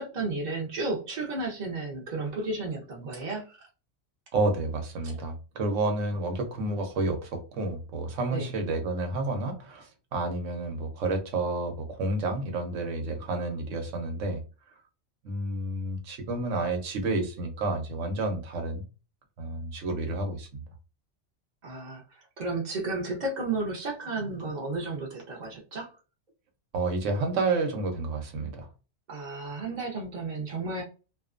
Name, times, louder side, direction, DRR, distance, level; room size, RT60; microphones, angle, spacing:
voice 1, 0.0-3.6 8.3-8.5 21.6-25.9 29.1-30.8, right 3 dB, 45° right, 0.7 m, -33 dB
voice 2, 4.3-14.4 15.2-18.9 19.4-20.6 26.7-28.7, right 2 dB, 85° right, 1.1 m, -30 dB
2.6 x 2.2 x 2.4 m
omnidirectional pair, 1.3 m